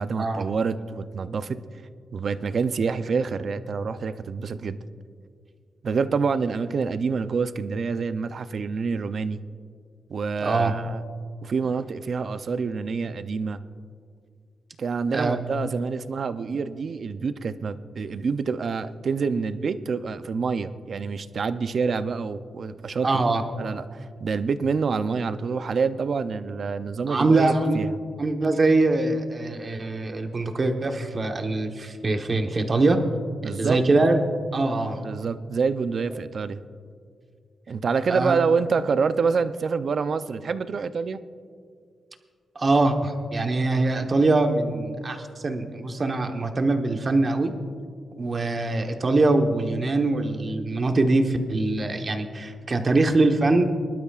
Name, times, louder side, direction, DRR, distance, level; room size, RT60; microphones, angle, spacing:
voice 1, 0.0-1.6 2.1-4.8 5.8-9.4 10.1-11.0 11.4-13.6 14.8-23.2 23.6-28.0 33.4-33.8 35.0-36.6 37.7-41.2, right 5 dB, 50° right, 12 dB, 0.5 m, -27 dB
voice 2, 10.4-10.7 15.1-15.7 23.0-23.4 27.1-27.8 28.2-33.0 33.6-34.2 34.5-35.0 38.1-38.4 42.5-47.5 48.2-53.6, right 2 dB, 35° right, 5 dB, 1.1 m, -23 dB
24.5 x 12.0 x 2.4 m, 2.1 s
wide cardioid pair, 130°, 0 cm